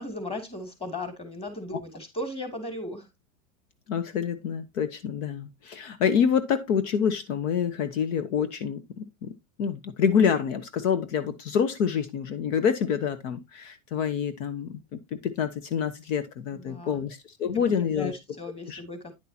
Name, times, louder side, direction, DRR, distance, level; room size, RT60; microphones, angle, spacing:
voice 1, 0.0-3.1 16.5-17.0 17.4-19.1, left 1 dB, 15° left, 2.6 m, -37 dB
voice 2, 3.9-9.3 9.6-18.1 18.7-18.8, left 7 dB, 60° left, 1.2 m, -27 dB
10.0 x 6.6 x 2.8 m
supercardioid pair, 130°, 42 cm